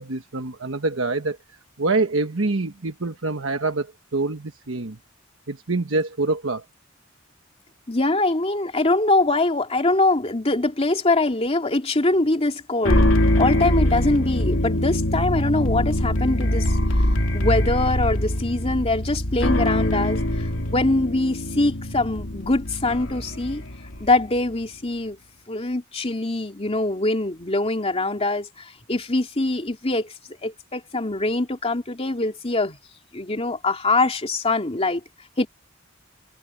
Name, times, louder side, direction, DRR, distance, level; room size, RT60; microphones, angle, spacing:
voice 1, 0.0-1.4 1.8-5.0 5.5-6.6, right 3 dB, 70° right, 1.3 m, -25 dB
voice 2, 7.9-16.6 17.0-17.1 17.3-23.6 24.0-25.2 25.5-30.1 30.4-32.8 33.1-35.0 35.4-35.5, left 2 dB, 30° left, 2.8 m, -23 dB
sound 1, 12.8-24.2, left 1 dB, 70° left, 2.9 m, -23 dB
head